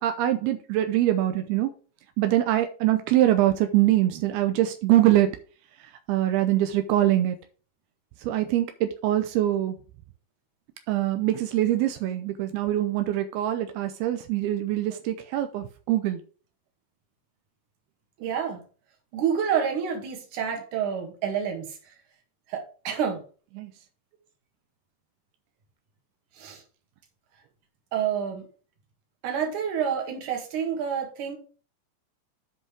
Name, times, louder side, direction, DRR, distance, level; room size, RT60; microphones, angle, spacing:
voice 1, 0.0-1.7 2.2-5.4 5.8-7.4 8.2-9.8 10.9-16.2 23.6-23.7, right 13 dB, 85° right, 8 dB, 2.3 m, -24 dB
voice 2, 18.2-18.6 19.1-21.8 22.5-23.2 26.4-26.6 27.9-28.5 29.2-31.4, right 7 dB, 55° right, 2 dB, 2.7 m, -28 dB
7.7 x 5.4 x 4.9 m, 0.38 s
omnidirectional pair, 5.1 m